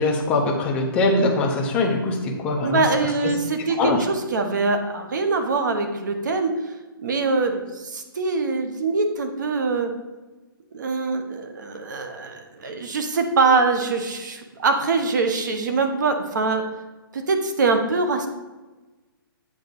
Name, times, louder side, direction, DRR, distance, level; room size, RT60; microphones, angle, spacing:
voice 1, 0.0-2.8 3.8-4.0, left 2 dB, 10° left, -1 dB, 0.6 m, -22 dB
voice 2, 2.6-6.6 7.0-9.9 10.7-16.6 17.1-18.3, right 3 dB, 55° right, 6 dB, 1.0 m, -23 dB
8.2 x 3.8 x 5.2 m, 1.2 s
hypercardioid pair, 175°, 12 cm